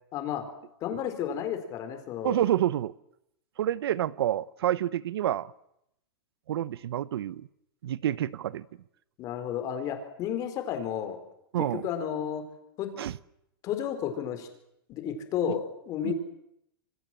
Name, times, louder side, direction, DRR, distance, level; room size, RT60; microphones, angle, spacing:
voice 1, 0.1-0.5 0.8-2.4 9.2-11.2 11.6-12.4 12.8-13.0 13.6-14.5 14.9-16.1, left 9 dB, 25° left, 4.0 m, -32 dB
voice 2, 2.2-2.9 3.6-5.5 6.5-7.5 7.8-8.7 11.5-11.8 13.0-13.1 16.0-16.1, right 12 dB, 80° right, 0.9 m, -28 dB
26.5 x 25.5 x 7.6 m
supercardioid pair, 165°, 13 cm